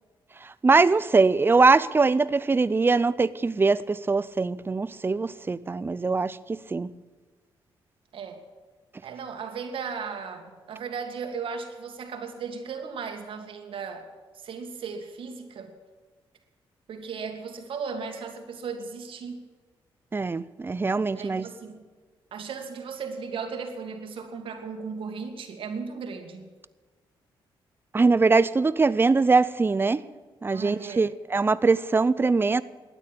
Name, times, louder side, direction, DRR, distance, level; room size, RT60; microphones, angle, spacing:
voice 1, 0.6-6.9 20.1-21.5 27.9-30.0 30.4-32.6, right 4 dB, 25° right, 17 dB, 0.6 m, -22 dB
voice 2, 9.0-15.7 16.9-19.4 21.1-21.8 22.3-26.5 30.5-31.0, right 5 dB, 70° right, 4 dB, 2.1 m, -36 dB
12.5 x 9.2 x 9.9 m, 1.4 s
cardioid pair, 85°, 9 cm